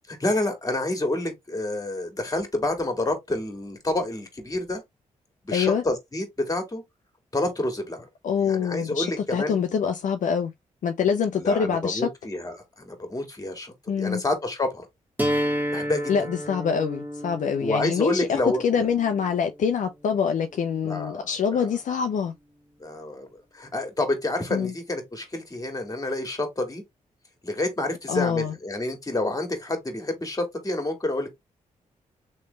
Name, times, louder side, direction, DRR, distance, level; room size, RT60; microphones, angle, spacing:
voice 1, 0.1-4.8 5.4-6.8 7.3-8.1 8.4-9.6 11.4-14.9 15.7-16.0 17.6-18.9 20.8-21.7 22.8-23.3 23.5-26.8 27.4-31.3, left 2 dB, 25° left, 1.8 m, -28 dB
voice 2, 5.5-5.8 8.2-10.5 10.8-12.1 13.9-14.2 16.1-22.3 24.5-24.7 28.1-28.5, left 7 dB, 65° left, 0.5 m, -25 dB
sound 1, 15.2-21.2, equal, 15° right, 1.6 m, -32 dB
3.2 x 3.2 x 3.1 m
cardioid pair, 60°, 14 cm